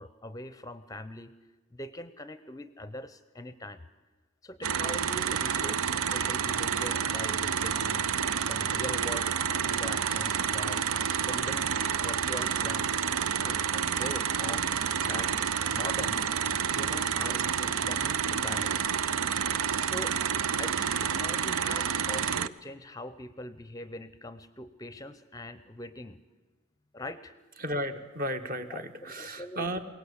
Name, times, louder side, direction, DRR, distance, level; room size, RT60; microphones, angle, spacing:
voice 1, 0.0-1.3 1.7-3.8 4.4-8.1 8.4-9.4 9.7-12.9 13.4-16.2 16.7-18.9 19.8-20.2 20.6-26.2 26.9-27.3 28.7-28.9 29.2-29.8, left 1 dB, 15° left, 13 dB, 0.6 m, -42 dB
sound 1, 4.6-22.5, right 7 dB, 90° right, 0.6 m, -29 dB
voice 2, 27.6-29.8, right 1 dB, 40° right, 7 dB, 1.4 m, -34 dB
22.5 x 18.0 x 8.1 m, 1.2 s
head